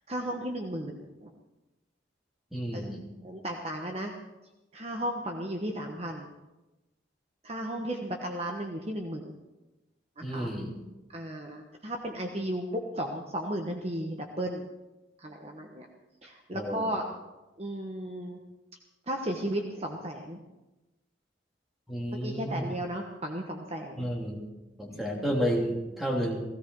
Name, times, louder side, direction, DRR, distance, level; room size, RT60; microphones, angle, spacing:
voice 1, 0.1-1.3 2.7-4.2 4.7-6.3 7.4-9.4 10.2-10.5 11.1-14.7 15.2-15.9 16.2-17.0 17.6-18.4 19.1-20.4 22.2-24.1, right 1 dB, 30° right, 2 dB, 1.2 m, -35 dB
voice 2, 2.5-3.0 10.2-10.7 16.5-16.9 21.9-22.7 24.0-24.4 24.8-26.4, equal, ahead, -2 dB, 2.8 m, -31 dB
16.5 x 16.5 x 4.7 m, 1.0 s
head